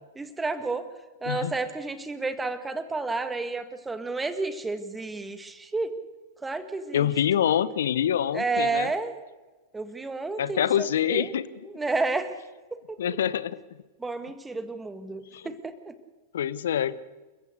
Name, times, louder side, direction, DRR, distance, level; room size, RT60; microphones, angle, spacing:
voice 1, 0.1-0.9 1.2-5.9 6.4-7.1 8.3-9.1 9.7-11.3 11.6-12.3 12.9-13.2 14.0-15.9, right 3 dB, 10° right, 10 dB, 1.8 m, -31 dB
voice 2, 6.9-8.9 10.4-11.4 13.0-13.6 15.3-15.5 16.3-17.0, left 9 dB, 65° left, 17 dB, 0.9 m, -25 dB
29.0 x 15.0 x 6.6 m, 1.3 s
figure-of-eight pair, 95°, 0 cm